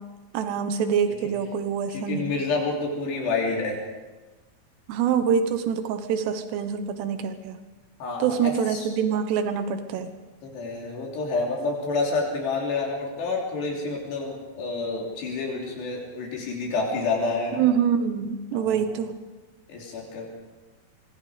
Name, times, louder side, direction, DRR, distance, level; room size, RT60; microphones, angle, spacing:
voice 1, 0.3-2.3 4.9-7.6 8.2-10.1 17.6-19.1, right 7 dB, 85° right, 8 dB, 3.3 m, -25 dB
voice 2, 1.9-3.8 8.0-8.9 10.4-17.7 18.5-18.9 19.7-20.3, left 3 dB, 85° left, -2 dB, 5.6 m, -29 dB
26.0 x 22.5 x 5.1 m, 1.2 s
omnidirectional pair, 4.7 m